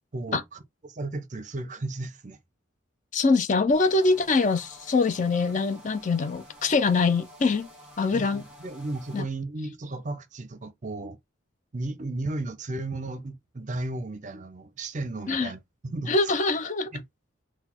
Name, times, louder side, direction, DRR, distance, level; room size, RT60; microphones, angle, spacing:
voice 1, 0.1-2.4 8.1-11.2 11.7-16.3 16.9-17.0, right 2 dB, 35° right, 0.5 m, -34 dB
voice 2, 3.1-7.7 8.0-8.4 9.1-9.2 15.3-15.5 16.1-16.9, left 3 dB, 35° left, 0.4 m, -24 dB
sound 1, 3.7-9.2, equal, 5° right, 1.4 m, -50 dB
4.0 x 2.2 x 4.2 m
head